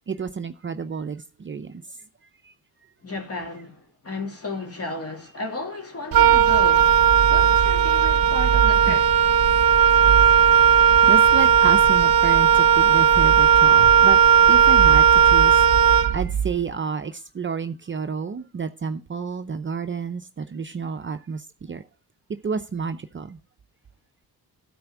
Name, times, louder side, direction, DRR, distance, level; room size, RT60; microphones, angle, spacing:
voice 1, 0.0-1.8 2.4-2.5 8.9-9.0 11.0-14.2 14.5-21.8 22.4-23.4, right 5 dB, 30° right, 0.7 m, -30 dB
voice 2, 3.0-9.2, left 3 dB, 35° left, 2.8 m, -34 dB
Wind instrument woodwind instrument, 6.1-16.5, right 8 dB, 55° right, 1.0 m, -16 dB
12.5 x 4.4 x 6.0 m
cardioid pair, 90°, 40 cm